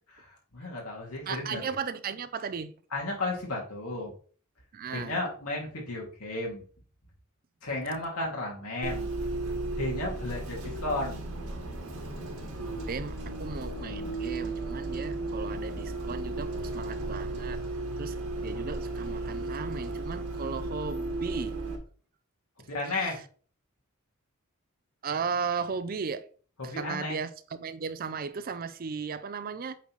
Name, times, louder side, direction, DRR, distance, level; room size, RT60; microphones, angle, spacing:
voice 1, 0.1-1.6 2.9-4.1 4.9-6.6 7.6-9.1 9.8-11.2 22.7-23.2 26.6-27.2, left 2 dB, 90° left, 2.5 m, -33 dB
voice 2, 1.3-2.7 4.7-5.2 12.9-17.6 18.0-18.2 18.4-21.5 23.0-23.1 25.0-26.3 26.6-29.8, right 5 dB, 40° right, 0.4 m, -36 dB
Bus, 8.8-21.7, right 2 dB, 80° right, 2.0 m, -34 dB
8.2 x 3.9 x 3.2 m
head